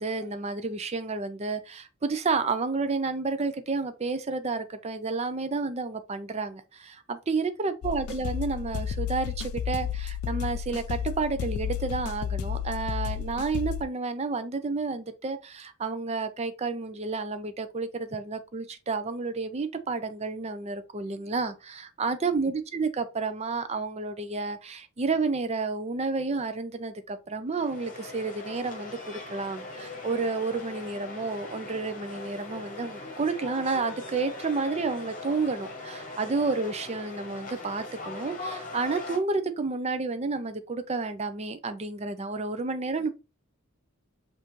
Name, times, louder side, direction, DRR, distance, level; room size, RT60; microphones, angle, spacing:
voice 1, 0.0-43.1, right 4 dB, 30° right, 0.5 m, -30 dB
sound 1, 7.8-13.8, left 8 dB, 85° left, 0.3 m, -32 dB
sound 2, 27.5-39.2, left 2 dB, 40° left, 1.1 m, -40 dB
5.4 x 2.6 x 3.1 m
head